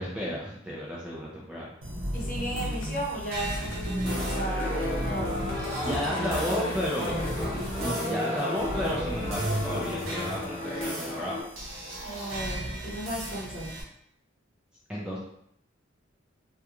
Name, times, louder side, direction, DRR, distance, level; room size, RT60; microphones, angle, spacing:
voice 1, 0.0-1.7 5.8-7.1 7.8-11.4 14.9-15.2, left 1 dB, 5° right, -5 dB, 0.3 m, -33 dB
sound 1, 1.8-13.8, right 1 dB, 85° right, 0.7 m, -35 dB
voice 2, 2.1-5.4 6.1-6.6 6.9-7.1 12.0-13.7, right 1 dB, 45° left, -4 dB, 0.8 m, -35 dB
sound 2, 2.6-7.7, equal, 90° left, 0.4 m, -39 dB
sound 3, 4.0-11.4, left 1 dB, 10° left, 0.9 m, -33 dB
2.4 x 2.2 x 2.8 m, 0.72 s
head